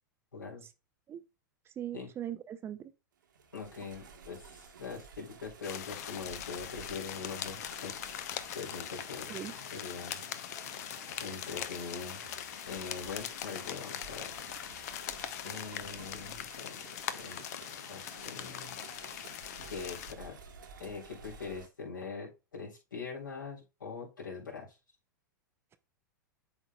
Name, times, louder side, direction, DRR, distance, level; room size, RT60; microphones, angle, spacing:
voice 1, 0.3-0.6 1.9-2.1 3.5-7.9 8.5-9.4 9.7-10.3 11.2-12.3 12.7-14.3 15.4-16.8 17.1-17.4 17.9-18.8 19.7-20.4 20.8-24.8, left 5 dB, 75° left, 3.4 m, -42 dB
voice 2, 1.8-2.9 9.3-9.5, right 10 dB, 20° right, 0.5 m, -40 dB
sound 1, 3.2-21.7, right 6 dB, 70° right, 1.3 m, -53 dB
sound 2, 5.6-20.1, left 11 dB, 50° left, 0.6 m, -41 dB
11.5 x 3.9 x 2.2 m
figure-of-eight pair, 95°, 11 cm